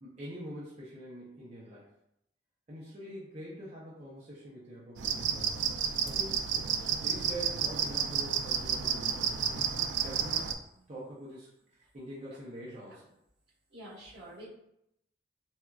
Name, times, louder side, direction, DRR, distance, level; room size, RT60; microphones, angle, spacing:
voice 1, 0.0-1.9 2.7-5.7 6.0-10.5 10.9-13.1, right 1 dB, 35° right, -7 dB, 0.6 m, -45 dB
sound 1, 5.0-10.5, right 7 dB, 90° right, 0.3 m, -31 dB
voice 2, 6.7-7.1 13.7-14.5, right 1 dB, 70° right, -7 dB, 1.4 m, -48 dB
4.2 x 2.4 x 2.3 m, 0.79 s
head